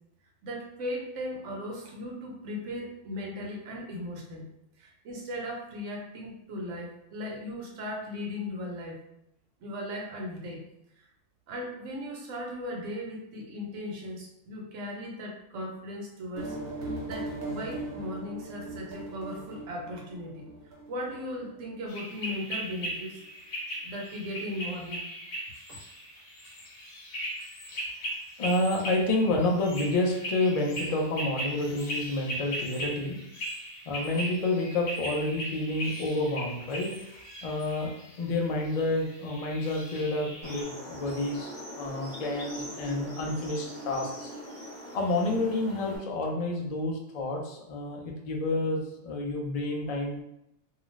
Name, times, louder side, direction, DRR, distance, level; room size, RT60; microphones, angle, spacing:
voice 1, 0.4-4.5 4.8-9.0 9.6-10.7 11.5-23.2 23.8-25.0 25.7-25.8, left 1 dB, 85° right, 0 dB, 1.0 m, -37 dB
sound 1, 16.3-21.8, right 2 dB, 55° right, 0.9 m, -39 dB
sound 2, 21.9-40.6, right 1 dB, 85° left, 1.2 m, -38 dB
voice 2, 28.4-33.2 33.9-37.0 37.4-41.5 41.8-44.3 44.9-50.2, left 2 dB, 65° left, 0 dB, 0.3 m, -29 dB
sound 3, 40.4-46.0, equal, 5° right, 0.8 m, -41 dB
2.4 x 2.3 x 3.0 m, 0.83 s
omnidirectional pair, 1.2 m